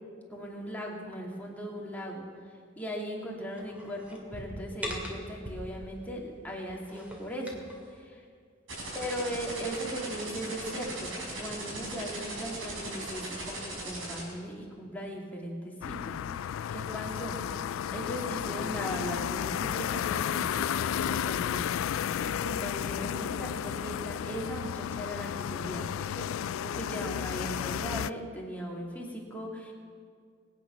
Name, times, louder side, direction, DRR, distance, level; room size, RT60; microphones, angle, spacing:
voice 1, 0.3-2.3 2.8-7.6 7.9-8.2 8.9-17.4 17.9-29.7, equal, 10° left, -2 dB, 2.4 m, -38 dB
sound 1, 3.5-6.0 6.6-7.8, equal, 10° right, 2.2 m, -41 dB
sound 2, 8.7-14.2, right 2 dB, 75° right, 4.6 m, -38 dB
sound 3, 15.8-28.1, left 9 dB, 80° left, 0.3 m, -33 dB
22.0 x 9.2 x 6.0 m, 2.1 s
head